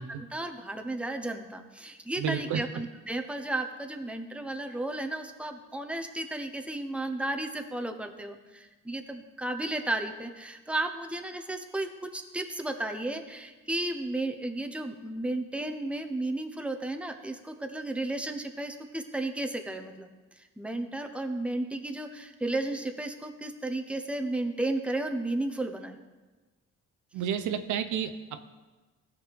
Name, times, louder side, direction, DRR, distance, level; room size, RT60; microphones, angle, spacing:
voice 1, 0.1-20.1 20.6-26.0, right 2 dB, 5° right, 5 dB, 0.8 m, -33 dB
voice 2, 2.2-2.6 27.1-28.5, right 8 dB, 80° right, 9 dB, 0.7 m, -31 dB
15.0 x 5.3 x 3.5 m, 1.2 s
cardioid pair, 90°, 30 cm